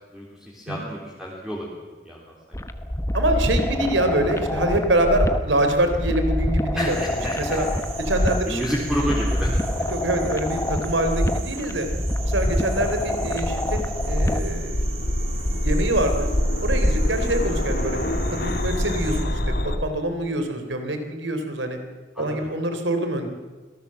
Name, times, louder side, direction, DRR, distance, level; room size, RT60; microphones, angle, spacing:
voice 1, 0.1-1.7 2.0-2.2 3.5-3.7 6.7-7.6 8.5-9.5 9.8-9.9 18.7-19.1 22.1-22.5, equal, 5° right, -4 dB, 3.4 m, -30 dB
sound 1, 2.5-14.6, left 1 dB, 15° left, 1.1 m, -26 dB
voice 2, 3.1-7.0 7.4-7.7 8.0-8.6 9.0-9.1 9.9-11.9 12.2-14.8 15.6-16.3 16.6-18.0 18.4-21.8 22.2-23.3, right 1 dB, 80° right, 7 dB, 3.6 m, -25 dB
sound 2, 6.9-19.2, right 4 dB, 35° right, 3.3 m, -39 dB
sound 3, 11.4-19.8, left 1 dB, 55° left, 1.9 m, -26 dB
26.0 x 18.0 x 7.6 m, 1.3 s
head